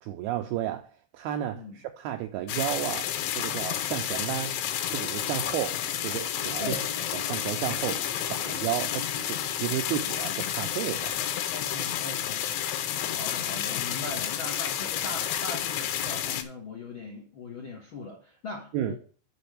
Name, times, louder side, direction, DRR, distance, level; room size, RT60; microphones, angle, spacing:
voice 1, 0.0-4.6 4.9-6.8 7.1-11.2 18.7-19.0, right 12 dB, 85° right, 2.2 m, -33 dB
sound 1, 2.5-16.4, left 10 dB, 80° left, 3.2 m, -30 dB
sound 2, 5.8-11.5, right 1 dB, 25° left, 3.9 m, -49 dB
voice 2, 11.5-12.4 13.1-19.0, left 2 dB, 65° left, 1.2 m, -39 dB
6.8 x 6.2 x 6.6 m
omnidirectional pair, 5.2 m